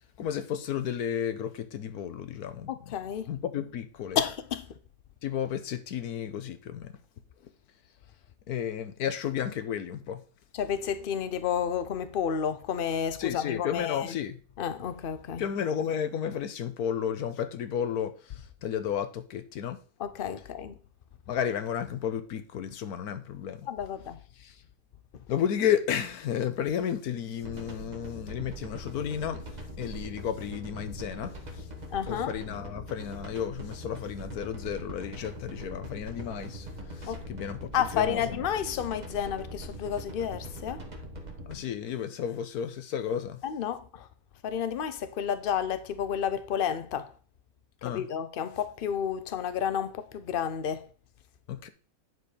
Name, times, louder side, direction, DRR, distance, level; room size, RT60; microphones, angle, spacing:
voice 1, 0.2-2.7 3.3-4.2 5.2-7.0 8.5-10.2 13.2-14.4 15.4-18.3 18.6-19.8 21.3-23.7 24.4-24.6 25.3-29.4 29.8-31.6 32.1-36.7 36.9-38.4 41.5-43.4 47.8-48.1 51.5-51.7, left 9 dB, 85° left, 1.4 m, -32 dB
voice 2, 2.7-3.3 4.1-4.7 10.5-14.1 14.6-15.4 20.0-20.8 23.7-24.2 31.9-32.3 37.1-37.2 37.7-40.8 43.4-44.1 44.4-47.1 47.8-50.9, left 8 dB, 50° left, 0.7 m, -31 dB
sound 1, 27.4-41.5, equal, 30° right, 1.4 m, -42 dB
9.9 x 4.8 x 4.9 m
omnidirectional pair, 1.6 m